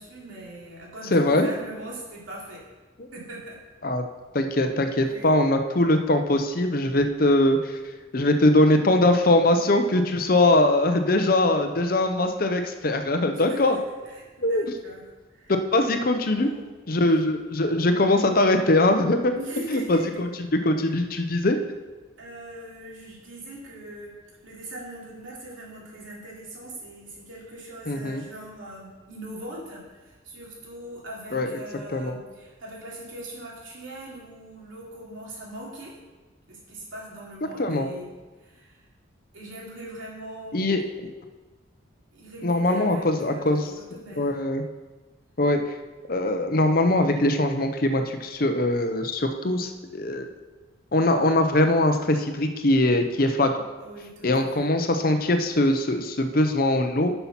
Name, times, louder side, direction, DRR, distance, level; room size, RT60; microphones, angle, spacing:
voice 1, 0.0-2.6 3.1-3.6 5.0-5.3 13.3-13.8 14.0-15.0 15.3-15.5 16.3-16.7 19.3-20.2 22.2-24.2 24.4-36.0 36.5-38.1 38.4-38.8 39.3-40.7 42.1-44.3 53.8-54.7, right 1 dB, 85° right, -4 dB, 3.0 m, -41 dB
voice 2, 1.1-1.5 3.8-4.0 4.3-7.8 8.1-13.8 14.4-14.7 15.7-16.5 16.9-19.3 19.7-20.3 20.6-21.6 27.9-28.2 31.3-31.5 31.9-32.2 37.6-37.9 40.5-41.1 42.4-43.7 44.2-44.6 45.4-45.6 46.1-50.3 50.9-53.6 54.2-57.1, left 1 dB, 45° left, 6 dB, 0.7 m, -22 dB
10.0 x 5.7 x 5.8 m, 1.2 s
head